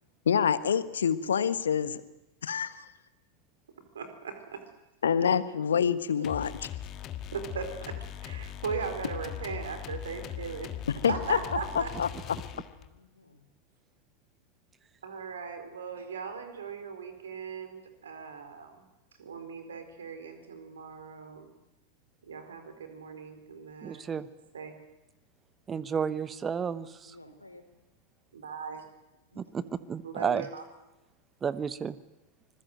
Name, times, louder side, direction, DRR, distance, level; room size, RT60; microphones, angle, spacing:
voice 1, 0.2-2.0 2.4-2.9 5.0-6.7 10.9-11.4 11.7-12.1, left 7 dB, 65° left, 15 dB, 1.3 m, -26 dB
voice 2, 3.9-4.6 6.2-6.3 7.3-10.7 11.1-11.9 15.0-18.8 19.2-21.5 22.2-24.1 24.5-24.7 28.3-28.8 30.0-30.6, right 6 dB, 65° right, 8 dB, 4.4 m, -38 dB
sound 1, 6.2-13.0, left 11 dB, 35° left, 1.5 m, -40 dB
voice 3, 10.9-11.5 12.7-13.5 27.1-27.6 29.3-29.6, left 2 dB, 85° left, 8 dB, 3.5 m, -52 dB
voice 4, 23.8-24.3 25.7-27.1 29.4-30.5 31.4-32.0, right 6 dB, 20° right, 17 dB, 1.0 m, -32 dB
25.5 x 21.0 x 8.0 m, 1.0 s
figure-of-eight pair, 90°, 0 cm